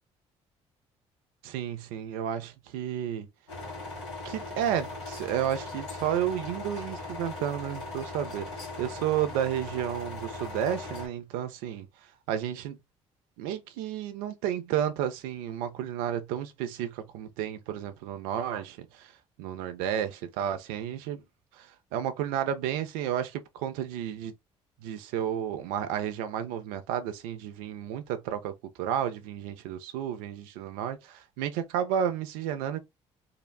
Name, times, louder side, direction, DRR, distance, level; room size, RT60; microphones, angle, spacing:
voice 1, 1.4-3.3 4.2-11.9 12.3-12.8 13.4-19.1 19.4-21.2 21.6-24.3 24.8-32.8, right 10 dB, 75° right, 0.5 m, -32 dB
sound 1, 3.5-11.1, left 2 dB, 90° left, 1.3 m, -39 dB
3.8 x 2.0 x 2.2 m
hypercardioid pair, 55°, 15 cm